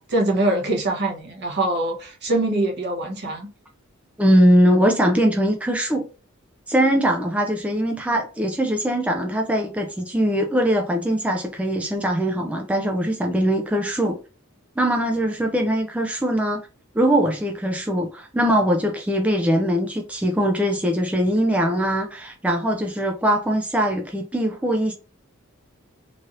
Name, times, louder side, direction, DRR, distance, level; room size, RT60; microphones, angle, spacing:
voice 1, 0.1-3.5, right 2 dB, 55° right, 1.0 m, -23 dB
voice 2, 4.2-6.1 6.7-14.2 14.8-16.6 16.9-24.9, equal, 5° right, 0.3 m, -21 dB
3.1 x 2.6 x 2.5 m
head